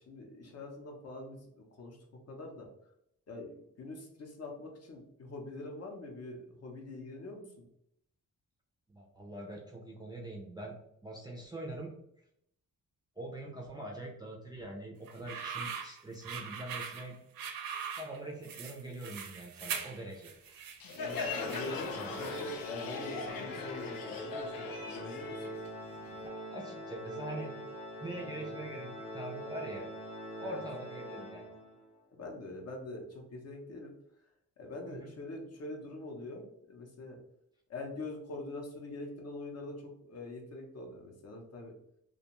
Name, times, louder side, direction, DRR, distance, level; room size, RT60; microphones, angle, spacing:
voice 1, 0.1-2.7 3.3-7.7 20.9-25.5 30.4-30.6 32.2-33.9 34.6-37.2 37.7-41.7, left 2 dB, 50° left, 1 dB, 0.6 m, -44 dB
voice 2, 8.9-10.8 11.0-11.9 13.2-17.2 17.9-20.3 21.9-22.2 26.2-27.5 28.0-29.9 30.4-31.5 34.9-35.1, right 1 dB, 15° right, -2 dB, 0.3 m, -43 dB
sound 1, 15.1-22.6, right 7 dB, 85° right, 0.5 m, -42 dB
Crowd, 20.8-26.2, left 4 dB, 90° left, 0.5 m, -40 dB
Organ, 21.2-31.9, equal, 20° left, 0.8 m, -43 dB
2.5 x 2.2 x 2.9 m, 0.74 s
wide cardioid pair, 135°, 34 cm